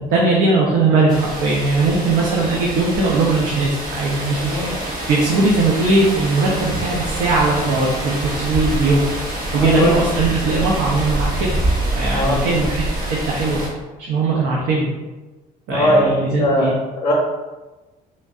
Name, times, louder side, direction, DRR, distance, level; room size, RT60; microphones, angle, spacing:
voice 1, 0.1-4.7 5.1-9.1 9.5-11.6 12.0-13.6 14.0-14.9 15.7-16.7, right 3 dB, 80° right, -3 dB, 0.6 m, -19 dB
sound 1, 1.1-13.7, right 1 dB, 50° right, 1.2 m, -26 dB
voice 2, 4.3-4.8 9.5-9.9 12.1-12.5 15.7-17.1, left 1 dB, 35° left, -4 dB, 0.6 m, -20 dB
3.2 x 2.6 x 2.3 m, 1.2 s
cardioid pair, 110°, 17 cm